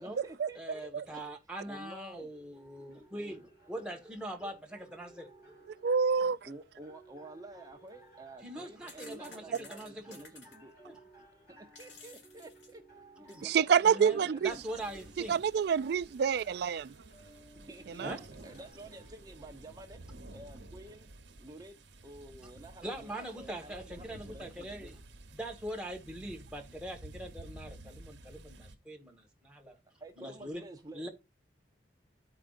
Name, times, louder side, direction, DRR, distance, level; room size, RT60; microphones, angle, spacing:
voice 1, 0.0-1.2 1.6-2.3 6.4-10.7 11.8-12.8 13.3-14.6 17.7-18.1 18.4-20.0 20.3-21.1 21.4-24.9 26.3-26.4 30.0-31.1, right 2 dB, 20° right, 0.8 m, -50 dB
voice 2, 0.5-5.5 6.2-6.3 8.4-10.2 10.8-11.0 13.2-13.4 13.8-15.4 18.0-18.3 22.8-25.0 25.3-29.8 30.2-30.6 30.9-31.1, right 1 dB, 5° right, 1.6 m, -42 dB
sound 1, 2.3-19.3, right 2 dB, 55° left, 2.6 m, -59 dB
voice 3, 5.8-6.4 13.4-14.5 15.3-16.9 18.0-18.2, right 6 dB, 60° right, 0.3 m, -27 dB
sound 2, 7.9-8.0 8.5-10.6 11.5-13.6 13.9-14.0 14.8-15.1 15.3-15.4 16.3-17.0 17.4-17.5 17.9-18.7, left 3 dB, 85° left, 1.7 m, -56 dB
sound 3, 14.5-28.8, right 1 dB, 90° right, 1.0 m, -52 dB
13.5 x 4.9 x 2.5 m
head